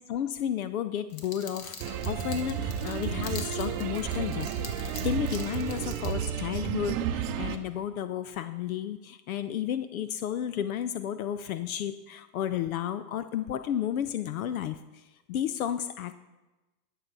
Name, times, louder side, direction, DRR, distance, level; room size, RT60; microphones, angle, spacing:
voice 1, 0.0-4.5 5.0-14.8 15.3-16.1, left 10 dB, 60° left, 13 dB, 0.7 m, -32 dB
sound 1, 1.1-6.1, left 5 dB, 40° left, 1.6 m, -45 dB
sound 2, 1.8-7.6, right 9 dB, 30° right, 0.7 m, -32 dB
11.0 x 6.8 x 6.0 m, 1.1 s
hypercardioid pair, 120°, 47 cm